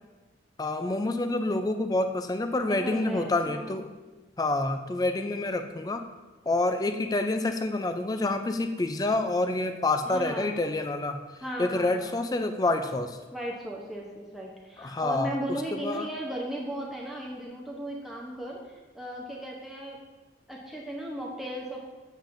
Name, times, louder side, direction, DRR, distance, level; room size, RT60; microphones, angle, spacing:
voice 1, 0.6-3.9 4.4-6.1 6.5-11.2 11.6-13.2 14.8-15.3 15.7-16.1, left 2 dB, 20° left, 8 dB, 0.3 m, -27 dB
voice 2, 2.7-3.8 10.0-10.6 11.4-12.1 13.3-20.0 20.5-21.8, right 1 dB, ahead, -3 dB, 0.7 m, -36 dB
7.3 x 7.2 x 2.6 m, 1.2 s
head